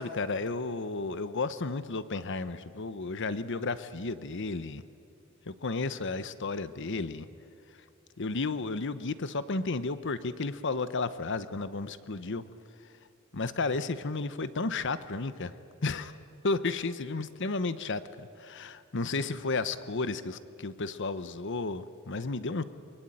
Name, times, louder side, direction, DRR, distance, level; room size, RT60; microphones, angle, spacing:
voice 1, 0.0-4.8 5.5-7.3 8.2-12.4 13.3-15.5 15.8-16.2 16.4-22.6, left 3 dB, 60° left, 13 dB, 0.9 m, -33 dB
23.5 x 23.5 x 9.2 m, 2.5 s
head